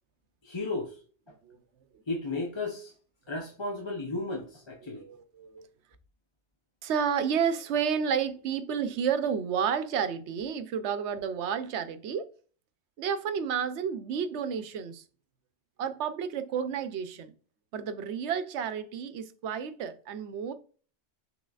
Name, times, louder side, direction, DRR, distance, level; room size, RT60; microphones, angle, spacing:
voice 1, 0.4-0.9 2.1-2.9 3.3-5.0, left 2 dB, 30° left, 0.7 m, -34 dB
voice 2, 4.8-5.7 6.8-12.3 13.0-15.0 15.8-17.3 17.7-20.5, right 7 dB, 85° right, 0.9 m, -31 dB
6.1 x 3.5 x 2.4 m
omnidirectional pair, 1.1 m